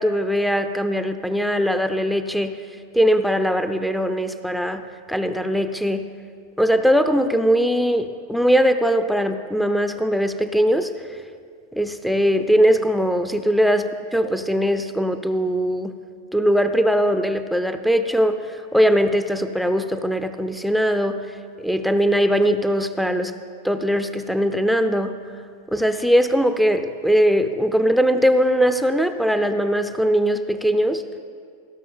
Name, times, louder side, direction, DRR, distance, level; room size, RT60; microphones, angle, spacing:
voice 1, 0.0-2.6 2.9-6.0 6.6-10.9 11.7-16.0 16.3-21.3 21.6-23.3 23.6-25.2 25.7-31.0, equal, ahead, 9 dB, 0.6 m, -20 dB
16.0 x 6.2 x 7.0 m, 2.2 s
figure-of-eight pair, 90°, 0 cm